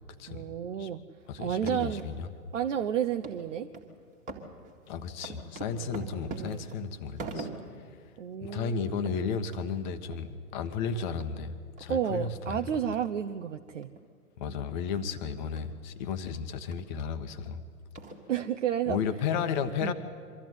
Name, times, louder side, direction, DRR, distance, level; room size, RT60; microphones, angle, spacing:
voice 1, 0.3-1.0 1.4-2.1 2.5-3.7 5.8-6.6 8.2-9.0 11.9-13.9 18.3-19.0 19.8-19.9, right 9 dB, 50° right, 7 dB, 0.8 m, -31 dB
voice 2, 1.3-2.3 4.9-7.5 8.4-12.6 14.4-17.6 18.8-19.9, left 6 dB, 30° left, 9 dB, 1.1 m, -33 dB
sound 1, 1.5-2.1 2.5-2.6 3.2-3.4 3.7-3.9 4.2-7.8 8.3-8.4 8.6-8.8 9.0-9.2 9.5-9.6 10.1-10.2 10.6-10.8 11.2-11.3 11.8-11.9 12.4-12.5 13.0-13.1 13.8-14.0 14.4-14.6 15.0-15.1 15.6-15.7 16.1-16.2 16.7-16.9 17.5-17.6 17.9-18.5, right 3 dB, 15° right, 1.9 m, -42 dB
23.5 x 13.5 x 9.3 m, 2.1 s
figure-of-eight pair, 120°, 47 cm